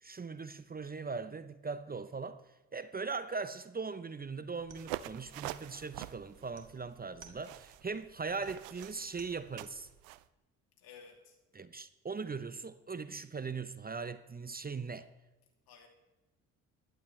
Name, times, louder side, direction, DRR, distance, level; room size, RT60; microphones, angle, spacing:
voice 1, 0.0-2.4 2.7-9.9 11.5-15.1, right 4 dB, 25° right, 0.8 m, -40 dB
sound 1, 4.6-10.0, right 6 dB, 50° right, 2.2 m, -60 dB
sound 2, 4.8-10.2, right 16 dB, 85° right, 0.5 m, -45 dB
voice 2, 10.8-11.3 15.7-15.9, left 6 dB, 70° left, 2.8 m, -55 dB
16.5 x 12.0 x 3.3 m
hypercardioid pair, 55°, 39 cm